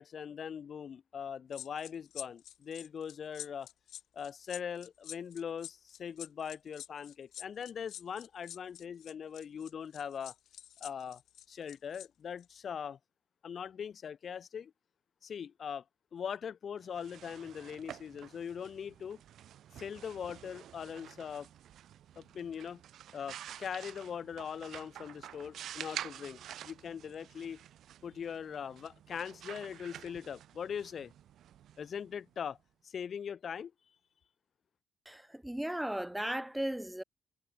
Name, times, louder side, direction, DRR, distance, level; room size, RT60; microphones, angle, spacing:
voice 1, 0.0-3.7 4.1-10.3 10.8-11.2 11.5-13.0 13.4-14.7 15.2-15.8 16.1-19.2 19.8-21.5 22.2-22.8 23.1-27.6 28.0-31.1 31.8-32.6 32.8-33.7, left 7 dB, 45° left, 0.5 m, -41 dB
sound 1, 1.5-12.1 12.4-12.6, left 11 dB, 75° left, 3.8 m, -48 dB
sound 2, 16.8-32.5, right 11 dB, 70° right, 1.7 m, -49 dB
voice 2, 35.1-37.0, right 1 dB, 5° right, 0.3 m, -36 dB
cardioid pair, 135°, 0 cm